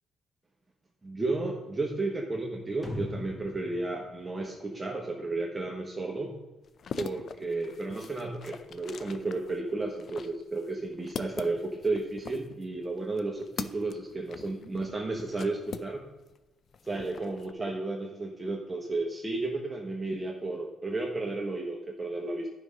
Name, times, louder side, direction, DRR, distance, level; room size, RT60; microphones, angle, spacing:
voice 1, 1.0-6.3 7.0-16.0 16.9-22.5, right 2 dB, 20° right, -1 dB, 1.2 m, -33 dB
sound 1, 2.8-5.3, left 1 dB, 10° left, 1.8 m, -40 dB
sound 2, 6.6-16.4 16.7-17.5, left 6 dB, 55° left, 0.5 m, -43 dB
11.0 x 5.4 x 5.1 m, 1.1 s
cardioid pair, 90°, 0 cm